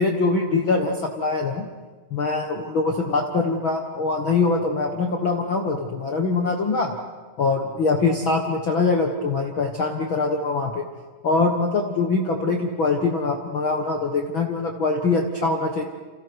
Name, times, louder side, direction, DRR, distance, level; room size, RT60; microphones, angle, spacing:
voice 1, 0.0-1.6 2.1-6.9 7.4-10.8 11.2-15.8, left 3 dB, 85° left, 2 dB, 1.1 m, -23 dB
29.5 x 28.0 x 4.7 m, 1.4 s
omnidirectional pair, 4.7 m